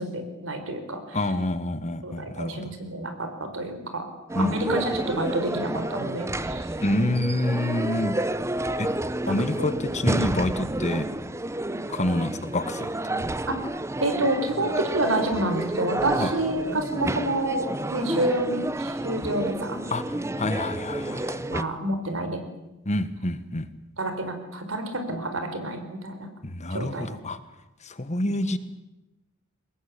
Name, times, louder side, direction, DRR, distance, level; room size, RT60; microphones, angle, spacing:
voice 1, 0.0-1.2 2.0-4.1 4.4-6.7 9.3-9.7 13.5-13.6 14.0-19.8 21.5-22.4 24.0-26.3 26.7-27.1, right 1 dB, 70° right, 7 dB, 4.5 m, -28 dB
voice 2, 1.1-2.7 4.3-4.6 6.8-8.2 8.8-8.9 9.3-11.1 11.9-12.9 16.2-16.3 19.9-20.0 20.4-21.4 22.8-23.7 26.4-27.4 27.8-28.6, left 1 dB, 35° left, 12 dB, 1.4 m, -27 dB
sound 1, 4.3-21.6, right 1 dB, 15° right, 0.8 m, -30 dB
23.5 x 20.0 x 8.6 m, 0.99 s
head